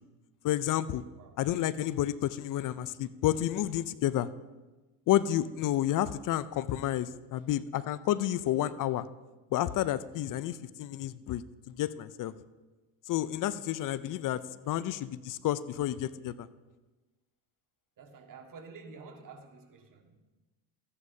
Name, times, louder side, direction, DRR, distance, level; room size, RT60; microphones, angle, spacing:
voice 1, 0.4-1.0 1.4-4.3 5.1-9.1 9.5-11.4 11.7-12.3 13.1-16.5, left 12 dB, 40° left, 16 dB, 0.5 m, -30 dB
voice 2, 18.0-20.2, right 4 dB, 40° right, 4 dB, 1.8 m, -50 dB
14.5 x 9.7 x 2.7 m, 1.2 s
hypercardioid pair, 85°, 50 cm